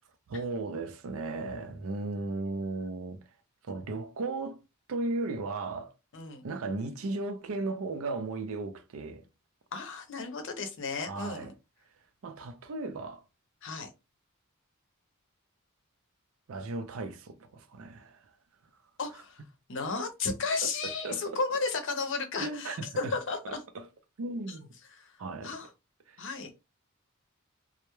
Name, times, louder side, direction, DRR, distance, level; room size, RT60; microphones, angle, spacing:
voice 1, 0.3-3.2 3.6-4.6 4.9-5.9 6.4-9.3 11.1-11.5 12.2-13.2 16.5-18.2 20.6-21.4 22.4-23.2 23.5-23.9 24.2-24.7 25.2-25.6 26.1-26.2, right 3 dB, 70° right, 0.4 m, -36 dB
voice 2, 6.1-6.4 9.7-11.5 13.6-13.9 19.0-19.4 19.7-23.6 24.5-24.6 24.9-25.2 25.4-25.7 26.2-26.5, left 4 dB, 60° left, 0.6 m, -34 dB
2.2 x 2.0 x 2.9 m
head